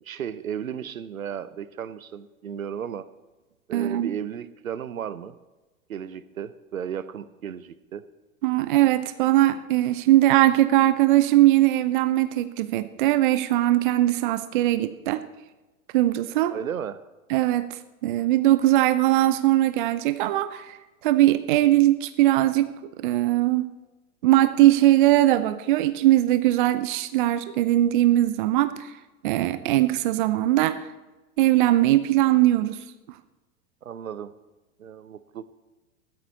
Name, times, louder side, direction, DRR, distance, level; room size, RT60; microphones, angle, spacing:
voice 1, 0.0-3.1 3.7-5.4 5.9-8.0 16.5-17.0 33.8-34.3 34.8-35.5, right 8 dB, 65° right, 16 dB, 0.8 m, -34 dB
voice 2, 3.7-4.1 8.4-15.2 15.9-16.5 17.3-20.8 21.0-22.7 23.0-23.7 24.2-28.9 29.2-30.9 31.4-32.8, right 15 dB, 35° right, 14 dB, 0.6 m, -20 dB
15.0 x 12.5 x 4.2 m, 1.2 s
figure-of-eight pair, 100°, 44 cm